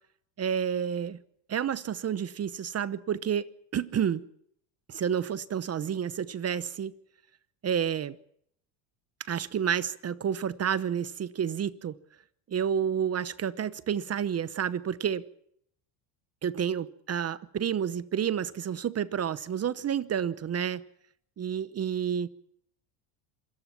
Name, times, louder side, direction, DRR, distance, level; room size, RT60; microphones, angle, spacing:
voice 1, 0.4-1.2 1.5-4.2 4.9-6.9 7.6-8.2 9.3-11.9 12.5-15.2 16.4-20.8 21.4-22.3, right 8 dB, 30° right, 0.9 m, -30 dB
26.5 x 17.5 x 5.9 m
supercardioid pair, 95°, 47 cm